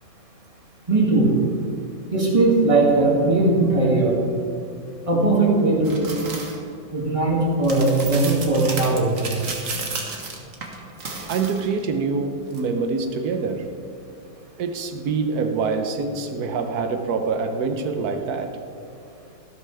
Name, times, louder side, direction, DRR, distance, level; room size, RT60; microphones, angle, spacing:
voice 1, 0.9-1.4 2.1-4.2 5.1-6.1 6.9-9.2, right 2 dB, 20° right, -3 dB, 2.1 m, -19 dB
sound 1, 5.8-6.6 7.6-11.8 12.5-12.6, right 3 dB, 60° right, 1.7 m, -32 dB
voice 2, 11.3-13.7 14.6-18.6, right 4 dB, 90° right, 6 dB, 1.3 m, -25 dB
13.5 x 12.5 x 3.4 m, 2.4 s
omnidirectional pair, 1.6 m